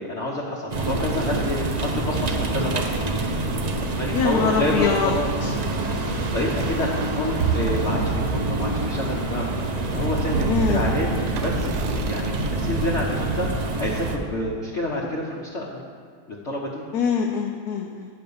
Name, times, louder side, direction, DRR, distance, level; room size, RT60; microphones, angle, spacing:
voice 1, 0.0-2.9 3.8-5.3 6.1-9.6 9.9-15.8 16.3-16.8, left 1 dB, 50° left, -4 dB, 1.2 m, -28 dB
sound 1, 0.7-14.2, right 2 dB, 65° right, 0.4 m, -26 dB
voice 2, 4.1-5.1 5.4-5.5 10.5-10.9 16.9-18.1, left 6 dB, 75° left, 2 dB, 1.1 m, -23 dB
sound 2, 5.6-9.2 9.8-12.9, right 7 dB, 85° right, 1.2 m, -32 dB
8.7 x 5.4 x 6.9 m, 2.1 s
omnidirectional pair, 1.7 m